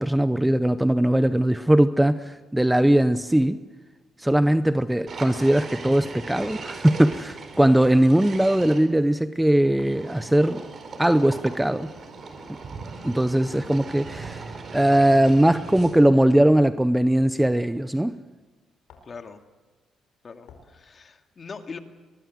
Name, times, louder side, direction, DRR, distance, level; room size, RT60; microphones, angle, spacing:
voice 1, 0.0-3.6 4.2-10.6 11.0-11.9 13.0-14.4 14.7-18.1, right 1 dB, 5° right, 12 dB, 0.7 m, -20 dB
sound 1, 3.1-3.4 4.5-4.7 5.9-6.0 7.1-7.3 8.3-8.5 9.8-10.0 11.3-11.5 13.0-13.3 14.1-14.4 14.9-15.2 15.8-16.0 17.5-17.6 18.9-19.2 20.5-20.7, left 5 dB, 80° left, 4.8 m, -51 dB
sound 2, 5.1-8.8 9.8-16.2, right 4 dB, 45° right, 4.4 m, -39 dB
voice 2, 19.1-19.4 20.2-21.8, left 5 dB, 40° left, 5 dB, 2.3 m, -41 dB
23.0 x 21.0 x 7.9 m, 1.3 s
cardioid pair, 90°, 0 cm